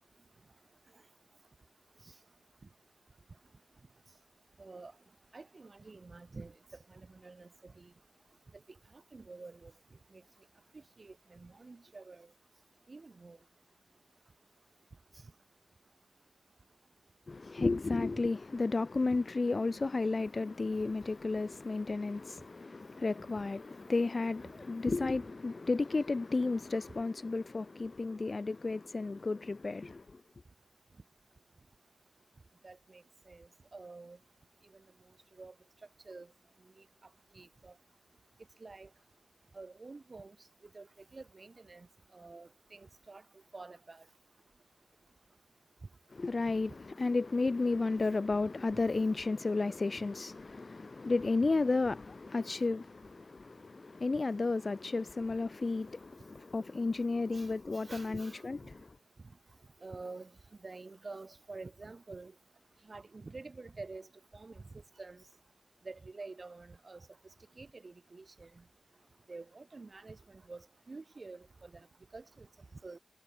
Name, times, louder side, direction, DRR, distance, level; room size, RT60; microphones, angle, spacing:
voice 1, 4.6-4.9 5.3-6.5 6.9-7.9 9.1-9.7 10.1-10.2 11.0-12.3 12.9-13.4 32.6-34.2 35.4-35.5 36.1-36.3 37.4-37.7 38.6-38.9 39.5-40.4 40.7-40.9 41.1-41.9 42.1-43.2 43.5-44.0 57.3-57.5 57.9-58.4 59.8-60.3 60.6-62.3 62.9-64.1 64.3-64.6 65.0-65.2 65.9-67.0 67.6-68.5 69.3-70.6 70.9-71.9 72.1-72.5 72.8-73.0, right 3 dB, 35° right, 5.5 m, -48 dB
voice 2, 17.3-30.0 46.2-58.9, left 3 dB, 30° left, 0.3 m, -33 dB
wide cardioid pair, 150°, 0 cm